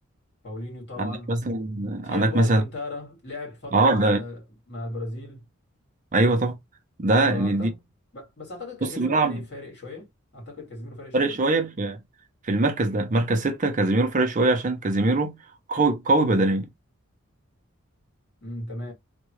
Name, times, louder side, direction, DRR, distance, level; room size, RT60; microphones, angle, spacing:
voice 1, 0.4-1.4 2.0-5.5 7.1-7.8 8.1-10.1 10.3-11.4 18.4-18.9, left 2 dB, 50° left, 2.2 m, -37 dB
voice 2, 1.0-2.6 3.7-4.2 6.1-6.5 7.0-7.7 8.8-9.4 11.1-12.0 12.4-15.4 15.7-16.7, right 2 dB, 35° right, 0.5 m, -22 dB
3.6 x 2.2 x 3.1 m
head